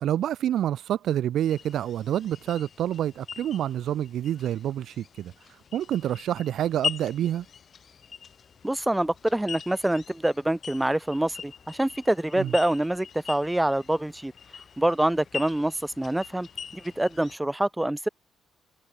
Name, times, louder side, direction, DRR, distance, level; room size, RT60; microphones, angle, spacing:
voice 1, 0.0-7.5 12.4-12.5, right 11 dB, 75° right, 0.7 m, -28 dB
sound 1, 1.5-17.4, left 7 dB, 50° left, 1.5 m, -41 dB
voice 2, 8.6-14.3 14.8-16.5 16.7-18.1, right 1 dB, 10° right, 1.4 m, -26 dB
cardioid pair, 90°, 0 cm